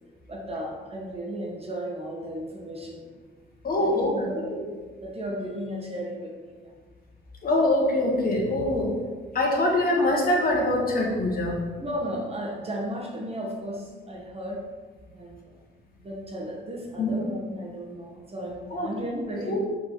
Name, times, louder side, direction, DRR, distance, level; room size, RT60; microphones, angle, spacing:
voice 1, 0.3-3.1 3.8-4.4 5.0-6.7 11.8-14.6 15.1-15.5 16.0-19.6, equal, 30° right, -1 dB, 1.2 m, -34 dB
voice 2, 3.6-4.5 7.4-8.9 9.3-11.6 17.0-17.2 18.7-18.9 19.5-19.6, left 1 dB, 50° left, -1 dB, 1.5 m, -24 dB
4.9 x 4.6 x 4.5 m, 1.4 s
cardioid pair, 90°, 20 cm